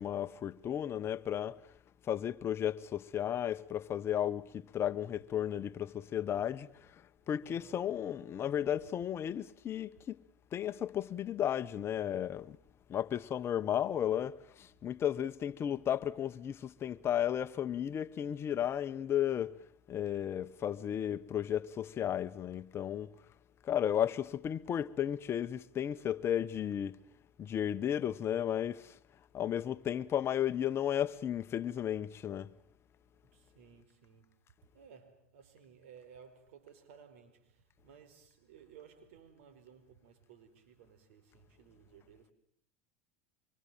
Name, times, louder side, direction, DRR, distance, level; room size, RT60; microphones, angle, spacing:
voice 1, 0.0-1.6 2.0-6.9 7.3-10.2 10.5-12.6 12.9-19.6 19.9-23.1 23.6-27.0 27.4-29.0 29.3-32.5, left 10 dB, 35° left, 1.1 m, -34 dB
voice 2, 7.4-7.8 33.3-42.3, right 7 dB, 75° right, 4.8 m, -58 dB
25.0 x 24.0 x 7.5 m
supercardioid pair, 100°, 7 cm